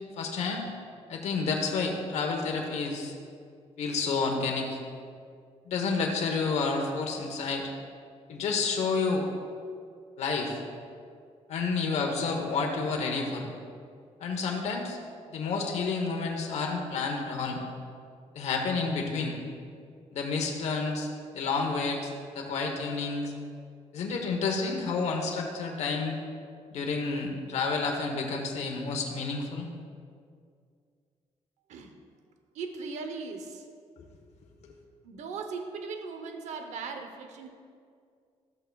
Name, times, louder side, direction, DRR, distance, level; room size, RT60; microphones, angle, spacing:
voice 1, 0.2-0.7 1.1-3.1 3.8-4.8 5.7-7.7 8.3-9.3 10.2-10.6 11.5-13.5 14.2-15.0 15.3-17.6 18.3-19.4 20.1-21.1 21.3-23.3 23.9-26.2 26.7-29.7 34.0-34.1, left 4 dB, 70° left, 1 dB, 1.0 m, -30 dB
voice 2, 32.5-33.7 35.0-37.5, right 4 dB, 75° right, 6 dB, 0.7 m, -38 dB
13.0 x 8.0 x 2.3 m, 2.2 s
cardioid pair, 160°, 12 cm